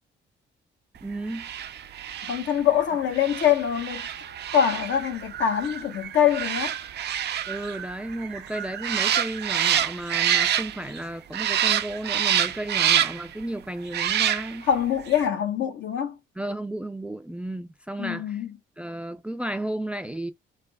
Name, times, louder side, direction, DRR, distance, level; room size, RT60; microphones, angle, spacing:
voice 1, 1.0-1.5 7.5-14.7 16.4-18.4 18.8-20.3, right 1 dB, 5° right, 0.4 m, -33 dB
sound 1, 1.3-11.0 11.3-13.3 13.9-14.7 15.1-15.2, right 10 dB, 55° right, 0.5 m, -27 dB
voice 2, 2.3-4.1 4.5-6.7 14.7-16.2 18.0-18.5, left 9 dB, 70° left, 1.0 m, -24 dB
3.8 x 3.3 x 2.2 m
cardioid pair, 90°, 20 cm